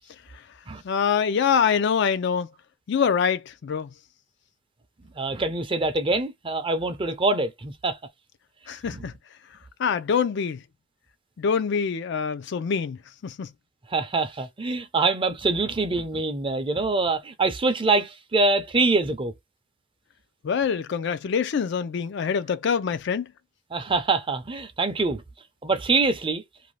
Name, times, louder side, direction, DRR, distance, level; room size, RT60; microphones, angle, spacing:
voice 1, 0.8-2.5 2.9-3.9 8.7-9.1 9.8-10.6 11.4-13.5 20.4-23.3, left 6 dB, 60° left, 0.4 m, -25 dB
voice 2, 5.2-8.0 8.9-9.0 13.9-19.3 23.7-25.2 25.6-26.4, right 3 dB, 25° right, 0.5 m, -24 dB
2.6 x 2.2 x 3.1 m
head